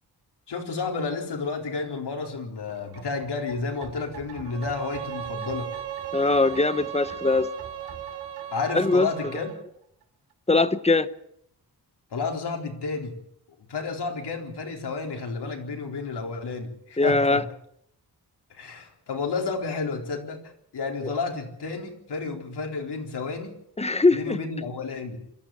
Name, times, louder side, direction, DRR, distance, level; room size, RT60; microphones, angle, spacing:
voice 1, 0.5-5.7 8.5-9.5 12.1-13.1 13.7-17.4 18.5-20.4 20.7-23.5 24.1-25.2, left 4 dB, 80° left, 2 dB, 4.3 m, -31 dB
sound 1, 2.7-10.0 10.3-10.4, right 7 dB, 65° right, 2.9 m, -47 dB
Bowed string instrument, 4.5-9.6, right 10 dB, 85° right, 1.5 m, -37 dB
voice 2, 6.1-7.5 8.7-9.1 10.5-11.1 17.0-17.4 21.0-21.1 23.8-24.4, left 3 dB, 15° left, 14 dB, 0.8 m, -21 dB
26.0 x 13.5 x 8.8 m, 0.71 s
wide cardioid pair, 180°, 39 cm